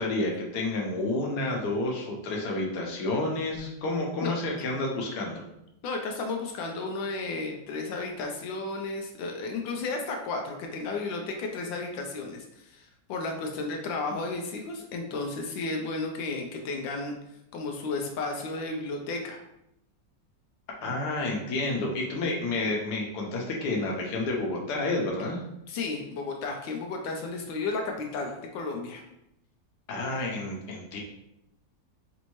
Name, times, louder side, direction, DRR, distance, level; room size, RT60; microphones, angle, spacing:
voice 1, 0.0-5.4 20.8-25.4 29.9-31.0, left 2 dB, 65° left, -1 dB, 1.4 m, -30 dB
voice 2, 5.8-17.2 17.5-19.4 25.7-29.0, left 3 dB, 85° left, 2 dB, 1.3 m, -33 dB
5.2 x 2.6 x 3.0 m, 0.83 s
omnidirectional pair, 2.0 m